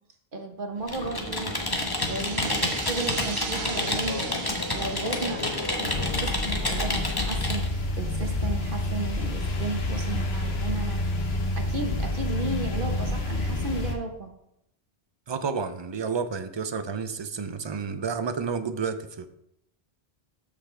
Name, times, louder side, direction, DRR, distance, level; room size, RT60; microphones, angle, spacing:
voice 1, 0.3-1.8 2.1-4.2 4.7-11.0 11.6-14.3, right 2 dB, 55° right, 4 dB, 1.2 m, -34 dB
Computer keyboard, 0.8-7.7, left 2 dB, 25° left, 1.1 m, -29 dB
sound 1, 1.3-7.7, right 8 dB, 80° right, 0.9 m, -41 dB
sound 2, 5.8-13.9, left 2 dB, 80° left, 1.3 m, -28 dB
voice 2, 15.3-19.3, right 5 dB, 35° right, 10 dB, 0.5 m, -30 dB
13.0 x 5.1 x 3.3 m, 0.79 s
omnidirectional pair, 1.0 m